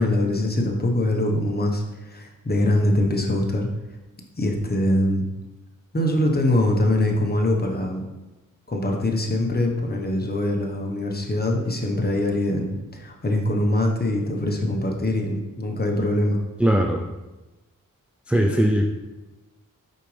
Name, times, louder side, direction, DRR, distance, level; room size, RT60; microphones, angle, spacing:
voice 1, 0.0-3.7 4.4-5.2 5.9-8.0 8.7-16.4, left 1 dB, 30° left, 1 dB, 1.2 m, -23 dB
voice 2, 16.6-17.0 18.3-18.8, equal, 5° right, 1 dB, 0.5 m, -19 dB
6.6 x 5.1 x 3.4 m, 1.1 s
cardioid pair, 60°, 33 cm